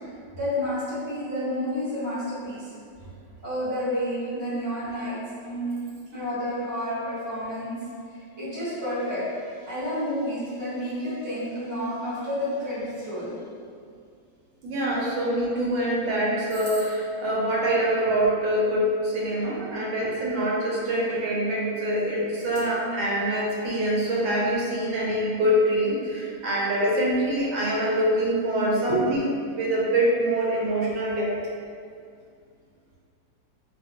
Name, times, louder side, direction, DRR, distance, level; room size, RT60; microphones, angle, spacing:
voice 1, 0.4-2.6 3.4-7.8 8.4-13.3 28.9-29.0, equal, 20° right, -11 dB, 0.5 m, -30 dB
voice 2, 14.6-31.3, right 1 dB, 90° right, -4 dB, 1.4 m, -25 dB
2.8 x 2.5 x 2.5 m, 2.2 s
omnidirectional pair, 2.1 m